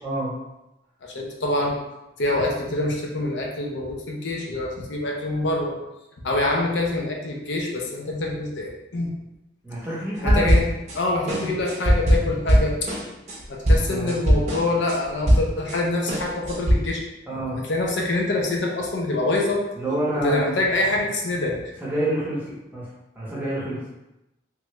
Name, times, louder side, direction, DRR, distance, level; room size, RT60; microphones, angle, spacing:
voice 1, 0.0-0.3 9.6-10.5 11.2-11.5 13.9-14.2 17.3-17.6 19.8-20.6 21.8-23.8, right 1 dB, 10° right, -7 dB, 0.8 m, -28 dB
voice 2, 1.0-1.8 2.2-5.8 6.2-9.2 10.2-10.6 11.0-12.7 13.5-17.0 17.6-19.6 20.2-21.6, left 2 dB, 80° left, -1 dB, 0.6 m, -25 dB
sound 1, 10.3-11.0 11.3-15.8 16.1-16.7, equal, 35° right, 0.6 m, -20 dB
3.1 x 2.4 x 3.1 m, 0.94 s
head